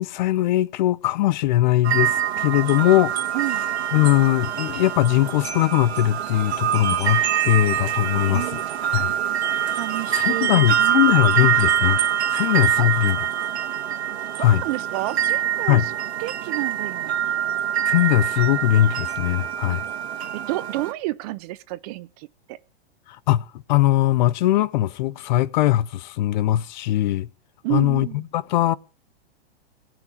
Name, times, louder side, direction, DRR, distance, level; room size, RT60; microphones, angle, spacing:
voice 1, 0.0-3.1 3.9-9.1 9.5-9.7 10.1-12.0 12.3-13.2 14.4-14.6 15.7-15.8 17.9-19.9 23.1-27.3 27.7-28.1 28.3-28.8, left 14 dB, 45° left, 0.6 m, -20 dB
sound 1, 1.8-20.9, right 10 dB, 85° right, 1.9 m, -24 dB
voice 2, 3.3-3.6 8.3-8.7 9.8-11.1 12.8-12.9 14.4-17.2 20.3-22.6 27.6-28.2, right 19 dB, 40° right, 0.7 m, -30 dB
17.5 x 6.0 x 7.2 m
hypercardioid pair, 150°, 32 cm